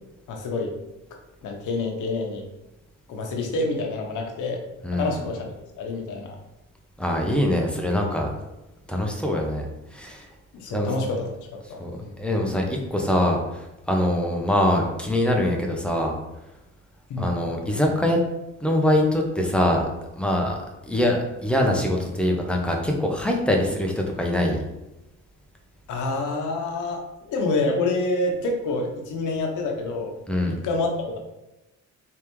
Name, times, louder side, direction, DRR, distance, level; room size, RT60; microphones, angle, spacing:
voice 1, 0.3-0.7 1.4-2.4 3.1-4.6 4.9-5.5 5.8-6.4 10.5-12.2 17.1-17.4 25.9-30.1 30.5-30.9, left 2 dB, 80° left, 2 dB, 0.9 m, -27 dB
voice 2, 4.8-5.2 7.0-8.3 8.9-9.7 9.9-10.2 10.7-10.9 11.8-11.9 12.2-16.1 17.2-18.2 18.6-19.9 20.2-20.6 20.9-24.6 30.3-30.6, left 1 dB, 5° left, 0 dB, 0.8 m, -23 dB
3.5 x 3.3 x 3.0 m, 0.98 s
cardioid pair, 90°, 30 cm